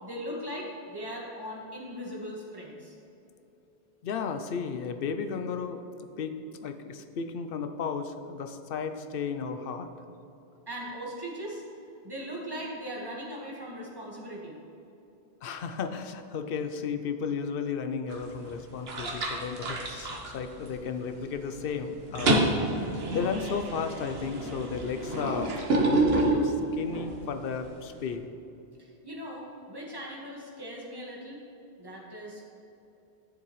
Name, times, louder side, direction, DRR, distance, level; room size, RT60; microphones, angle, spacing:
voice 1, 0.0-2.9 10.7-11.6 12.0-14.6 28.8-31.4 31.8-32.5, equal, 25° right, -3 dB, 1.5 m, -39 dB
voice 2, 4.0-5.8 6.2-9.9 15.4-25.6 25.8-28.3, left 6 dB, 65° left, 8 dB, 0.8 m, -34 dB
sound 1, 18.1-18.5 18.9-21.0 21.3-21.6 21.9-27.2, right 2 dB, 75° right, 1.3 m, -28 dB
12.0 x 7.4 x 3.1 m, 3.0 s
omnidirectional pair, 1.0 m